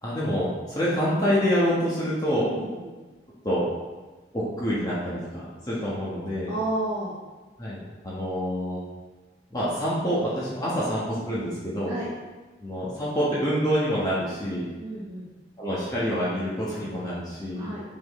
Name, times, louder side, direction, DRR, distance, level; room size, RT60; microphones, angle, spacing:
voice 1, 0.0-2.5 3.4-3.7 4.3-6.5 7.6-7.8 8.0-8.8 9.5-11.9 12.6-14.7 15.6-17.7, equal, 20° left, -8 dB, 1.3 m, -26 dB
voice 2, 2.5-2.9 6.5-7.2 11.9-12.1 14.8-15.3 17.6-17.8, right 1 dB, 35° right, -10 dB, 1.6 m, -31 dB
7.1 x 6.1 x 3.2 m, 1.2 s
head